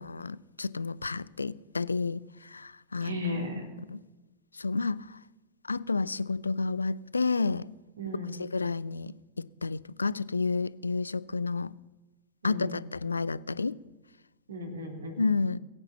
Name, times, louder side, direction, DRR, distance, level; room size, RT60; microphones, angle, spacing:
voice 1, 0.0-3.5 3.9-4.0 4.6-5.0 5.7-7.7 8.4-11.7 12.4-13.8 15.2-15.6, left 4 dB, 80° left, 0.4 m, -31 dB
voice 2, 3.0-3.7 8.0-8.4 12.4-12.7 14.5-15.2, left 1 dB, 70° right, 3.3 m, -35 dB
20.5 x 8.9 x 5.7 m
figure-of-eight pair, 90°, 0 cm